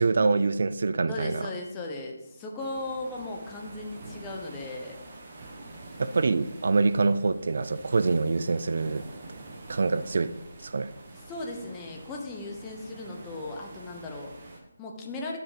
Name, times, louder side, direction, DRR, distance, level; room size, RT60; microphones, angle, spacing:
voice 1, 0.0-1.5 6.0-9.0 9.7-10.3 10.6-10.9, right 3 dB, 55° right, 13 dB, 0.4 m, -25 dB
voice 2, 1.1-5.0 11.1-15.4, left 2 dB, 10° left, 0 dB, 0.9 m, -37 dB
sound 1, 2.6-14.6, right 2 dB, 30° right, 1.1 m, -46 dB
8.5 x 4.8 x 5.0 m, 0.92 s
figure-of-eight pair, 170°, 0 cm